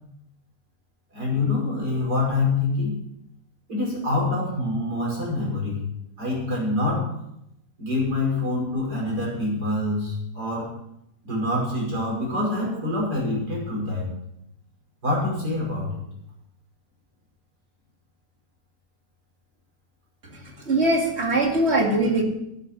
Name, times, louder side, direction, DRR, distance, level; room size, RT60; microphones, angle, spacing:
voice 1, 1.1-3.0 3.7-5.8 6.2-7.1 7.8-10.7 11.2-14.0 15.0-16.0, left 2 dB, 80° right, -4 dB, 6.2 m, -25 dB
voice 2, 20.3-22.2, right 2 dB, 40° right, 1 dB, 2.5 m, -22 dB
11.0 x 10.0 x 6.3 m, 0.81 s
omnidirectional pair, 1.7 m